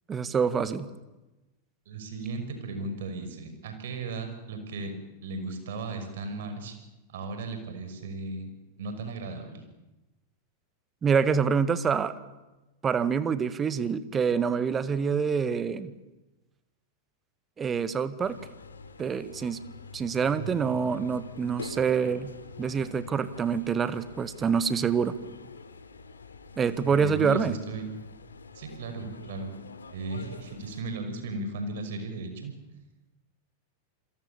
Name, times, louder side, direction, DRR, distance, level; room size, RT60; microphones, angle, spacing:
voice 1, 0.1-0.9 11.0-12.1 12.8-15.9 17.6-18.4 19.0-19.6 19.9-22.3 22.6-25.1 26.6-27.5, right 6 dB, 20° right, 14 dB, 1.7 m, -26 dB
voice 2, 1.9-4.9 5.2-6.7 7.1-8.5 8.8-9.6 20.3-20.8 26.8-28.0 28.5-29.5 29.9-32.5, right 3 dB, 60° right, 7 dB, 5.9 m, -36 dB
sound 1, 18.2-30.8, left 4 dB, 70° left, 3.6 m, -46 dB
28.0 x 23.0 x 7.2 m, 1.0 s
figure-of-eight pair, 90°, 0 cm